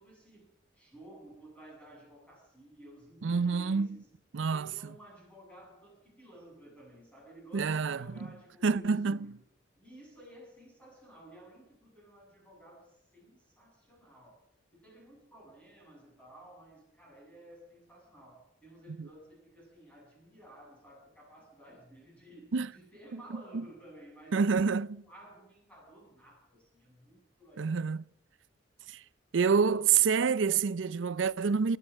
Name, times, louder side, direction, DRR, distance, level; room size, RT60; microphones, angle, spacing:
voice 1, 0.0-4.1 4.4-9.4 9.8-14.4 14.7-27.8, right 1 dB, 5° left, 7.4 m, -54 dB
voice 2, 3.2-3.9 4.3-4.7 7.5-8.1 8.6-9.3 19.0-19.1 22.5-22.7 23.1-23.7 24.3-25.0 27.6-28.0 28.9-29.0 29.3-31.8, right 5 dB, 85° right, 0.5 m, -28 dB
20.5 x 11.0 x 6.2 m
head